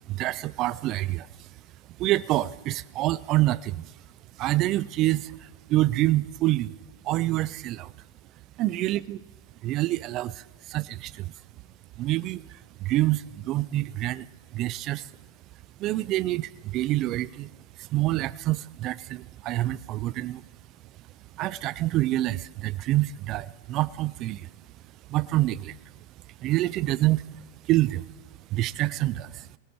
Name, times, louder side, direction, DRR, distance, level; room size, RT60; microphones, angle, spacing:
voice 1, 0.1-1.5 2.0-3.9 4.4-6.8 7.0-7.9 8.6-9.2 9.6-11.3 12.0-14.3 14.5-15.1 15.8-17.5 17.8-20.4 21.3-24.5 25.1-25.8 26.4-28.1 28.5-29.5, right 16 dB, 45° right, 20 dB, 0.4 m, -27 dB
23.5 x 18.5 x 3.0 m, 1.3 s
hypercardioid pair, 100°, 0 cm